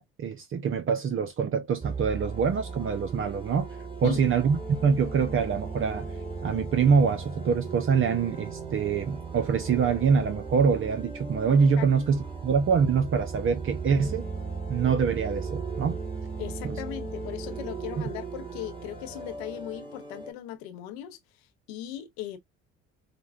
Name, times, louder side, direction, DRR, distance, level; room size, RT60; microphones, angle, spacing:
voice 1, 0.0-3.7 4.0-6.1 6.4-14.2 14.7-16.0 16.6-16.8, right 6 dB, 40° right, 0.7 m, -25 dB
sound 1, 1.8-20.3, right 4 dB, 15° right, 1.9 m, -37 dB
voice 2, 16.4-21.2 21.7-22.4, left 12 dB, 85° left, 0.8 m, -38 dB
5.0 x 2.2 x 2.4 m
hypercardioid pair, 65°, 31 cm